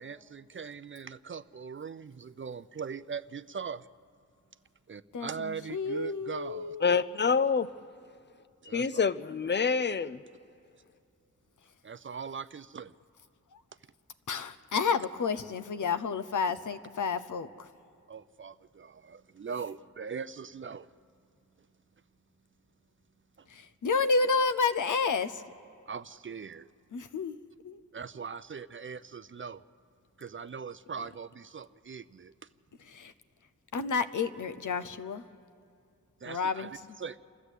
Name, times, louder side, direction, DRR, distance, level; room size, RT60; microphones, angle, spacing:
voice 1, 0.0-3.9 4.9-6.8 8.6-9.0 11.8-12.9 18.1-20.9 23.4-23.5 25.9-26.7 27.9-29.6 30.2-32.3 36.2-37.2, right 6 dB, 40° right, 15 dB, 0.4 m, -41 dB
voice 2, 5.1-6.9 13.5-13.6 14.3-17.7 23.5-25.4 26.9-27.4 27.6-27.8 32.9-33.1 33.7-35.2 36.3-36.7, left 4 dB, 70° left, 11 dB, 0.8 m, -30 dB
voice 3, 6.8-7.7 8.7-10.2, left 5 dB, 35° left, 15 dB, 0.5 m, -26 dB
29.0 x 13.0 x 8.2 m, 2.3 s
wide cardioid pair, 100°, 32 cm